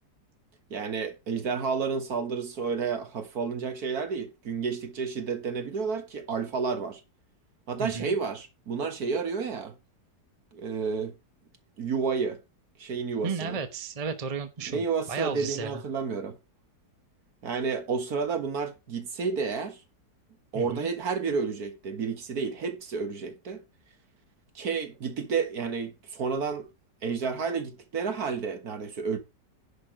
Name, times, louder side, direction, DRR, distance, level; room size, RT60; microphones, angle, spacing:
voice 1, 0.7-7.0 7.7-9.7 10.5-11.1 11.8-12.4 12.8-13.6 14.7-16.4 17.4-19.8 20.5-23.6 24.6-26.7 27.0-29.2, right 5 dB, 60° right, 1.9 m, -31 dB
voice 2, 7.8-8.1 13.2-15.8 20.5-20.9, right 5 dB, 25° right, 0.9 m, -34 dB
10.5 x 6.3 x 5.0 m
omnidirectional pair, 1.9 m